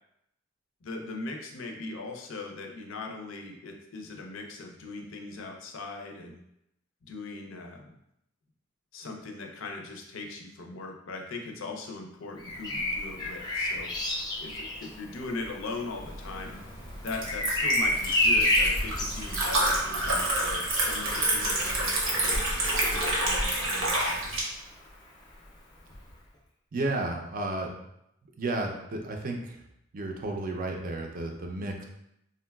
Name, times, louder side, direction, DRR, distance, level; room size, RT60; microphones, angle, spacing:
voice 1, 0.8-6.4 7.1-7.9 8.9-13.9 14.4-16.6 17.0-24.6, left 3 dB, 70° left, 2 dB, 0.5 m, -40 dB
Bird vocalization bird call bird song, 12.4-24.2 25.9-26.1, left 1 dB, 20° left, 0.5 m, -31 dB
Liquid, 16.0-24.4, right 1 dB, 90° right, 0.8 m, -29 dB
voice 2, 26.7-27.7 28.4-29.6 29.9-31.8, right 2 dB, 45° right, 2 dB, 0.4 m, -32 dB
3.7 x 2.2 x 2.2 m, 0.79 s
head